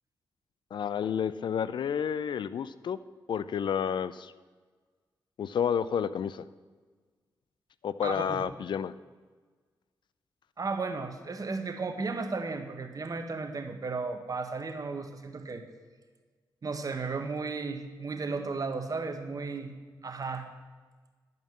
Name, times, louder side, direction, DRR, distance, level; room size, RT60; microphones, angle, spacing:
voice 1, 0.7-3.0 3.3-4.3 5.4-6.4 7.8-8.9, left 8 dB, 70° left, 16 dB, 0.4 m, -30 dB
voice 2, 8.0-8.4 10.6-15.6 16.6-19.7 20.0-20.5, right 4 dB, 45° right, 6 dB, 1.2 m, -34 dB
11.0 x 5.4 x 7.3 m, 1.4 s
cardioid pair, 60°, 8 cm